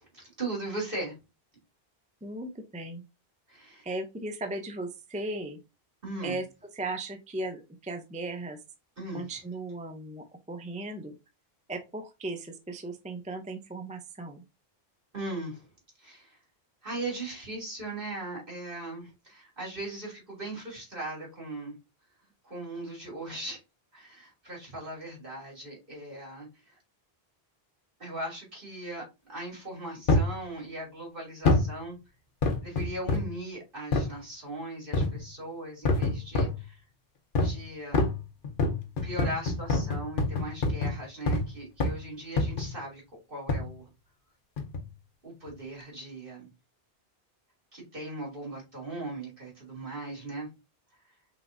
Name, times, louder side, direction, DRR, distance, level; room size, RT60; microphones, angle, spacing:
voice 1, 0.2-1.1 3.5-3.9 6.0-6.4 9.0-9.2 15.1-15.7 16.0-16.4 16.8-21.8 22.4-23.6 23.9-26.7 28.0-29.0 29.3-32.0 32.6-36.8 37.4-38.0 39.0-43.0 43.3-43.9 45.2-46.5 47.7-50.5, right 2 dB, 60° right, 3.1 m, -38 dB
voice 2, 2.2-3.0 3.8-5.6 6.2-6.5 6.7-8.6 9.1-11.1 11.7-14.4, right 2 dB, 10° right, 0.5 m, -37 dB
sound 1, 30.1-30.4 31.4-31.8 32.4-33.4 33.9-34.1 34.9-35.3 35.8-36.6 37.3-37.6 37.9-41.5 41.8-42.0 42.4-42.8 43.5-43.7 44.6-44.9 45.5-45.6, left 2 dB, 60° left, 0.9 m, -27 dB
5.8 x 3.4 x 2.6 m
omnidirectional pair, 1.0 m